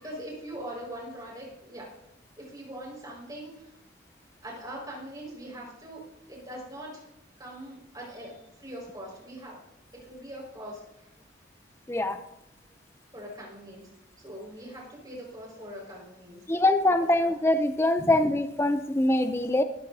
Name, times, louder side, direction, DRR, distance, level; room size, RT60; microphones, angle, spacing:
voice 1, 0.0-1.9 2.4-3.8 4.4-6.0 6.3-7.0 7.4-9.6 10.0-11.1 13.1-13.9 14.2-16.6 17.2-17.3 18.0-18.1, equal, 20° right, -3 dB, 5.3 m, -42 dB
voice 2, 11.9-12.2 16.5-19.6, left 1 dB, 10° left, 9 dB, 0.5 m, -23 dB
20.5 x 14.5 x 2.8 m, 0.86 s
head